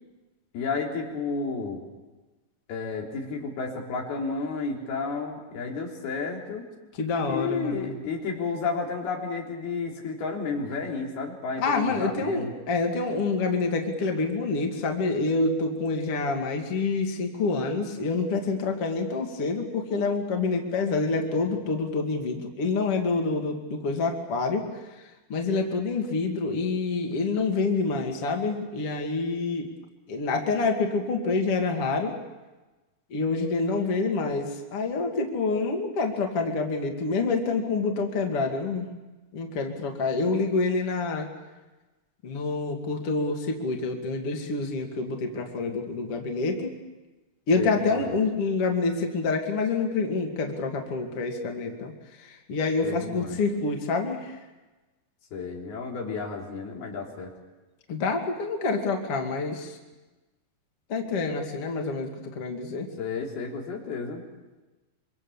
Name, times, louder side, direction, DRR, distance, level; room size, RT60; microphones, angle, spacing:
voice 1, 0.5-1.8 2.7-6.7 7.3-12.5 47.6-48.1 52.8-53.4 55.3-57.4 63.0-64.2, left 4 dB, 90° left, -1 dB, 5.5 m, -32 dB
voice 2, 7.0-7.9 11.6-29.7 30.1-32.1 33.1-38.9 39.3-41.3 42.2-46.7 47.5-54.4 57.9-59.8 60.9-62.9, left 3 dB, 40° left, 3 dB, 2.9 m, -27 dB
26.0 x 24.5 x 7.2 m, 1.2 s
omnidirectional pair, 4.3 m